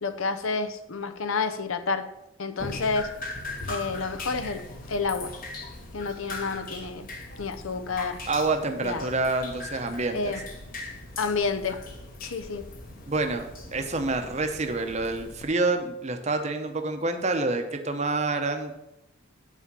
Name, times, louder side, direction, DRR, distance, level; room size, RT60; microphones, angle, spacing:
voice 1, 0.0-2.1 2.4-3.1 3.7-5.3 5.9-7.1 7.4-8.2 8.8-9.1 10.1-10.4 11.2-11.8 12.2-12.6, left 4 dB, 70° left, 9 dB, 0.7 m, -29 dB
Drip, 2.6-15.4, left 2 dB, 40° left, 1.2 m, -40 dB
voice 2, 8.3-10.3 13.1-18.7, right 3 dB, 30° right, 6 dB, 0.8 m, -27 dB
8.6 x 5.0 x 6.9 m, 0.92 s
head